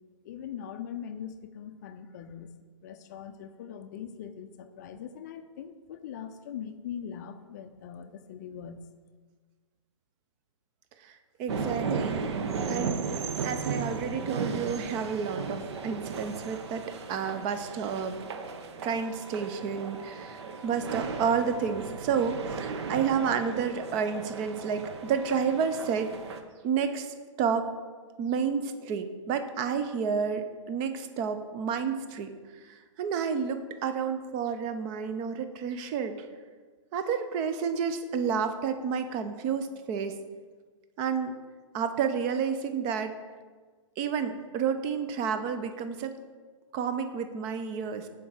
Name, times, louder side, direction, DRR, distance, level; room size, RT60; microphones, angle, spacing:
voice 1, 0.2-2.5 2.8-8.9, left 8 dB, 35° left, 9 dB, 0.5 m, -41 dB
voice 2, 11.0-12.2 12.6-18.2 18.8-26.4 26.6-27.7 28.2-32.3 32.7-36.3 36.9-40.2 41.0-41.3 41.7-43.1 44.0-46.2 46.7-48.1, right 6 dB, 20° right, 9 dB, 0.4 m, -30 dB
sound 1, 11.5-26.4, right 5 dB, 55° right, 0.8 m, -35 dB
6.9 x 4.6 x 6.4 m, 1.5 s
hypercardioid pair, 155°, 17 cm